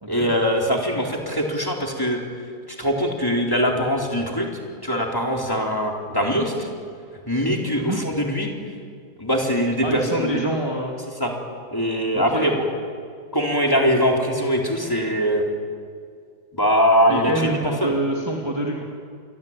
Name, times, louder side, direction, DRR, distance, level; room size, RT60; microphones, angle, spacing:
voice 1, 0.1-2.2 2.8-4.5 4.8-6.7 7.3-8.5 9.2-10.5 11.2-11.3 11.7-12.5 13.3-15.5 16.5-17.5 17.8-18.0, equal, 10° left, 0 dB, 4.1 m, -22 dB
voice 2, 9.8-11.0 12.1-12.6 17.1-18.8, right 1 dB, 10° right, -1 dB, 2.7 m, -26 dB
28.5 x 22.5 x 9.1 m, 2.2 s
omnidirectional pair, 2.1 m